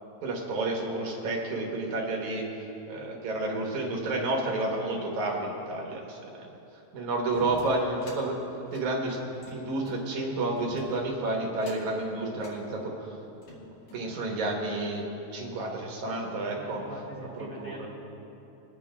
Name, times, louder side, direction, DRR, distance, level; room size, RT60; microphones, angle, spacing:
voice 1, 0.2-2.5 2.9-6.3 6.9-8.4 8.7-9.2 9.5-13.1 13.9-15.0 15.3-16.8 17.4-17.9, right 2 dB, 85° right, -1 dB, 3.0 m, -30 dB
sound 1, 7.3-8.2 8.6-10.0 10.6-11.1 11.5-12.0 12.4-12.6 13.2-14.1, left 1 dB, 90° left, 3.9 m, -47 dB
voice 2, 16.5-17.9, equal, 25° left, -8 dB, 3.0 m, -43 dB
23.0 x 8.4 x 3.6 m, 2.9 s
omnidirectional pair, 3.3 m